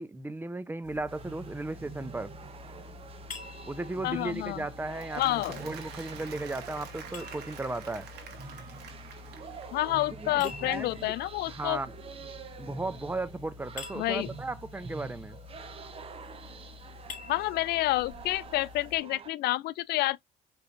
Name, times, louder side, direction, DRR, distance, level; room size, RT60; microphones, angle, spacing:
voice 1, 0.0-2.3 3.7-8.1 10.1-11.1 11.5-11.9 12.6-15.4, right 2 dB, 10° right, 0.6 m, -36 dB
sound 1, 0.8-19.0, left 6 dB, 50° left, 2.4 m, -48 dB
sound 2, 1.1-19.3, right 5 dB, 35° right, 0.9 m, -46 dB
voice 2, 4.0-4.6 5.2-5.6 9.7-11.8 14.0-14.3 17.3-20.2, left 17 dB, 75° left, 0.4 m, -29 dB
Applause, 4.8-9.9, right 7 dB, 75° right, 1.5 m, -48 dB
4.9 x 3.3 x 2.6 m
cardioid pair, 110°, 17 cm